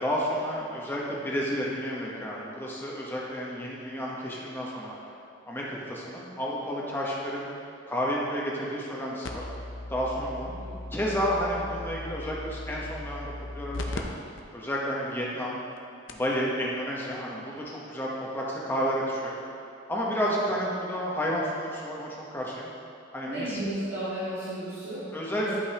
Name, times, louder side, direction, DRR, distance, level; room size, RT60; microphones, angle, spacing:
voice 1, 0.0-5.1 5.4-7.5 7.9-9.4 9.9-10.5 10.9-14.1 14.5-15.6 16.1-19.4 19.9-22.7 23.1-23.6 25.1-25.5, equal, 10° left, -4 dB, 1.0 m, -31 dB
sound 1, 9.2-14.0 14.4-14.5 15.1-15.2 15.8-15.9 16.1-16.3 17.6-17.7, left 2 dB, 75° left, 0.6 m, -38 dB
voice 2, 23.3-25.0 25.3-25.5, right 1 dB, 60° right, -10 dB, 1.5 m, -33 dB
11.5 x 5.3 x 2.9 m, 2.6 s
head